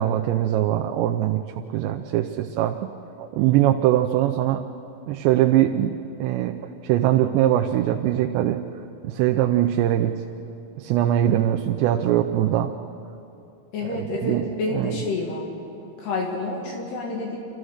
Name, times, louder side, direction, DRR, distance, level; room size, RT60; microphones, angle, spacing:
voice 1, 0.0-1.4 1.7-2.9 3.2-4.6 5.1-5.9 6.2-6.6 6.8-8.6 9.0-10.1 10.8-12.7 13.9-14.5 14.7-15.0, right 12 dB, 80° right, 3 dB, 2.8 m, -21 dB
voice 2, 13.7-15.5 16.0-17.4, left 3 dB, 70° left, -1 dB, 4.0 m, -28 dB
27.5 x 15.0 x 6.5 m, 2.7 s
omnidirectional pair, 5.1 m